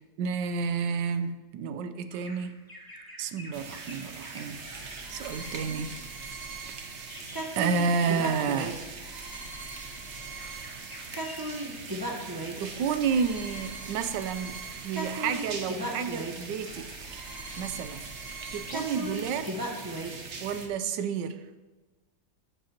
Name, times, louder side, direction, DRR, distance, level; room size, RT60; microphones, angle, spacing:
voice 1, 0.2-2.6 3.2-6.0 7.6-8.8 12.6-16.9 17.6-18.0 18.5-19.5 20.4-21.4, right 6 dB, 75° right, 10 dB, 1.2 m, -30 dB
Bird vocalization bird call bird song, 2.1-8.2 8.5-8.7 9.7-12.0 12.5-13.1 13.5-18.0 18.3-18.9, left 1 dB, 15° left, 0.9 m, -51 dB
sound 1, 3.5-20.7, right 4 dB, 50° right, 0.9 m, -42 dB
sound 2, 4.5-20.2, right 1 dB, 15° right, 0.8 m, -39 dB
13.5 x 7.5 x 2.9 m, 1.2 s
omnidirectional pair, 2.0 m